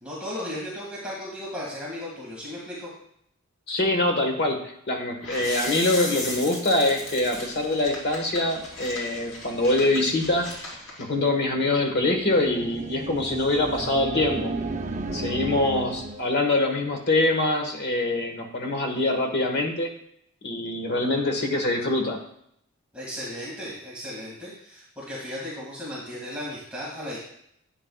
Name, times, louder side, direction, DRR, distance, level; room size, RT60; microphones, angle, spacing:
voice 1, 0.0-2.9 22.9-27.2, left 1 dB, 5° right, -7 dB, 2.1 m, -35 dB
voice 2, 3.7-4.6 4.9-10.5 11.0-14.5 15.1-19.9 20.4-22.2, left 2 dB, 55° left, 3 dB, 1.4 m, -24 dB
sound 1, 5.2-11.0, left 2 dB, 85° left, 3.0 m, -37 dB
sound 2, 11.8-16.4, right 2 dB, 35° right, 0.6 m, -33 dB
11.5 x 8.8 x 2.4 m, 0.72 s
head